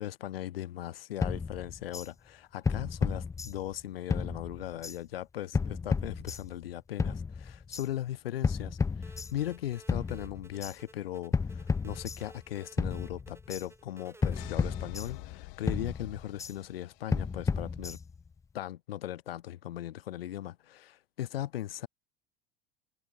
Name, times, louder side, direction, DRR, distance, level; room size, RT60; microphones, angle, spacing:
voice 1, 0.0-18.0 18.5-21.9, left 13 dB, 80° left, 1.7 m, -38 dB
sound 1, 1.2-2.1 2.6-3.8 4.1-5.0 5.5-6.6 7.0-7.9 8.4-9.6 9.9-10.7 11.3-12.5 12.8-13.6 14.2-15.4 15.7-16.5 17.1-18.3, left 5 dB, 10° left, 0.4 m, -32 dB
sound 2, 9.0-14.5, right 2 dB, 10° right, 4.2 m, -56 dB
sound 3, 14.4-17.2, left 40 dB or more, 60° left, 2.0 m, -47 dB
hypercardioid pair, 75°, 29 cm